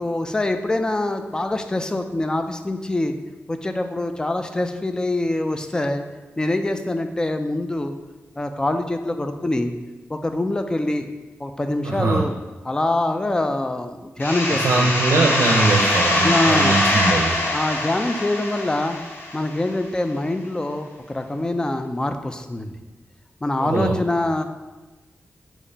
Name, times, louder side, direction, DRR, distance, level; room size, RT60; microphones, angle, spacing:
voice 1, 0.0-3.2 3.5-6.0 6.4-7.9 8.4-9.7 10.1-11.1 11.4-12.3 12.6-14.9 16.1-16.8 17.5-19.0 19.3-22.7 23.4-24.4, left 2 dB, 15° left, 7 dB, 0.3 m, -24 dB
voice 2, 11.8-12.3 14.5-17.4 23.6-24.0, right 3 dB, 85° right, -1 dB, 0.5 m, -21 dB
sound 1, 14.2-19.7, left 1 dB, 55° left, 0.8 m, -22 dB
4.1 x 3.0 x 3.9 m, 1.2 s
wide cardioid pair, 120°, 5 cm